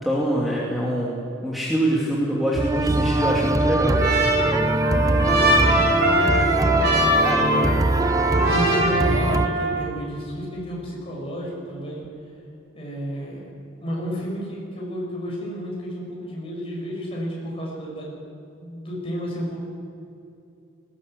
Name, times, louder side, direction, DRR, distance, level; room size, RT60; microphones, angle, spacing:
voice 1, 0.0-4.0, right 1 dB, ahead, -5 dB, 2.7 m, -24 dB
sound 1, 2.6-9.5, right 2 dB, 15° right, 0.6 m, -22 dB
Trumpet, 3.1-9.9, right 1 dB, 55° right, 5.7 m, -23 dB
voice 2, 4.3-12.0 12.7-13.5 13.8-18.2 18.6-19.6, equal, 30° left, -4 dB, 7.4 m, -31 dB
20.0 x 18.5 x 8.2 m, 2.7 s
head